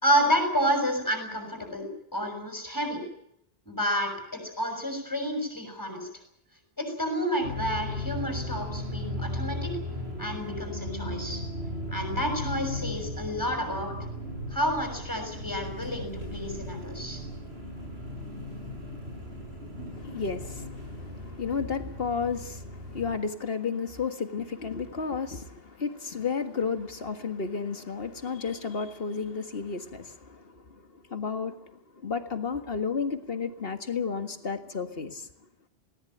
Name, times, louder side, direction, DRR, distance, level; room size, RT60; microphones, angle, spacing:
voice 1, 0.0-3.0 3.7-6.1 6.8-9.8 10.2-11.4 11.9-14.0 14.5-17.2, equal, 20° left, 4 dB, 6.5 m, -30 dB
sound 1, 7.4-23.2, left 1 dB, 80° right, 8.1 m, -36 dB
voice 2, 19.9-35.3, left 5 dB, 65° left, 7 dB, 1.9 m, -32 dB
20.0 x 18.0 x 9.1 m, 0.74 s
omnidirectional pair, 1.0 m